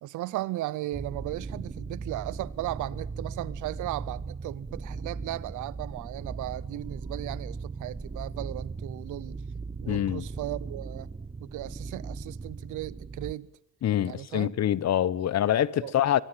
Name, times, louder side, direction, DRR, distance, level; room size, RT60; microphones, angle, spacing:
voice 1, 0.0-9.4 9.8-11.1 11.4-13.5 14.0-14.5 15.7-15.9, right 16 dB, 85° right, 0.8 m, -36 dB
sound 1, 0.9-13.3, right 4 dB, 20° right, 1.0 m, -38 dB
voice 2, 9.9-10.2 13.8-16.2, left 11 dB, 60° left, 1.0 m, -25 dB
23.0 x 22.5 x 7.6 m
cardioid pair, 90°, 30 cm